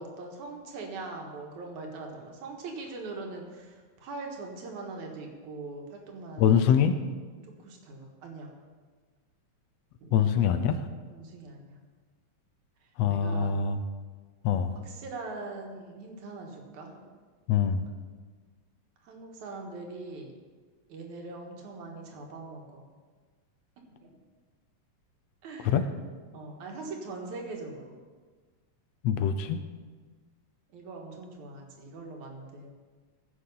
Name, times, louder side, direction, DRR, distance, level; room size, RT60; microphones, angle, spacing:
voice 1, 0.0-6.5 7.6-8.5 10.0-10.1 11.1-11.8 13.1-13.5 14.8-17.0 19.0-20.3 20.9-22.9 23.9-24.1 25.4-25.8 26.3-28.0 30.7-32.7, right 3 dB, 80° right, 1 dB, 2.9 m, -41 dB
voice 2, 6.4-7.0 10.1-10.8 13.0-13.8 14.4-14.8 17.5-17.9 25.6-25.8 29.0-29.6, left 8 dB, 75° left, 9 dB, 1.7 m, -24 dB
15.5 x 6.7 x 5.5 m, 1.5 s
omnidirectional pair, 3.3 m